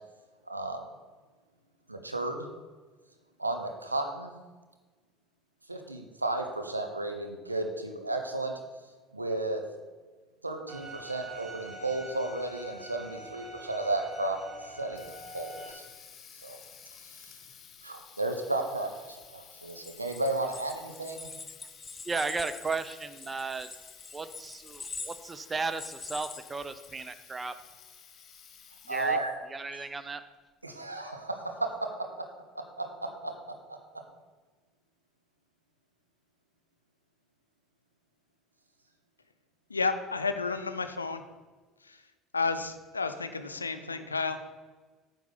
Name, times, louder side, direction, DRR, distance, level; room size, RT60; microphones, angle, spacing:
voice 1, 0.5-0.8 1.9-2.5 3.4-4.3 5.7-8.5 9.1-9.6 10.4-14.4 14.6-15.1 15.3-15.8 16.4-16.6 17.0-17.3 17.8-21.3 28.9-29.3 29.7-29.8 30.6-31.7 32.8-33.8, right 2 dB, 90° right, 4 dB, 0.9 m, -33 dB
Bowed string instrument, 10.7-15.7, right 1 dB, 45° right, 3.1 m, -45 dB
Water tap faucet, 14.6-29.3, left 7 dB, 45° left, 1.1 m, -53 dB
sound 1, 19.7-27.1, left 4 dB, 25° left, 0.5 m, -45 dB
voice 2, 22.1-23.7 24.1-27.5 28.9-29.2 29.5-30.2, right 4 dB, 20° right, 12 dB, 0.6 m, -35 dB
voice 3, 39.7-41.2 41.8-42.0 42.3-44.5, left 4 dB, 85° left, 10 dB, 0.5 m, -31 dB
9.3 x 3.9 x 7.0 m, 1.3 s
figure-of-eight pair, 65°, 0 cm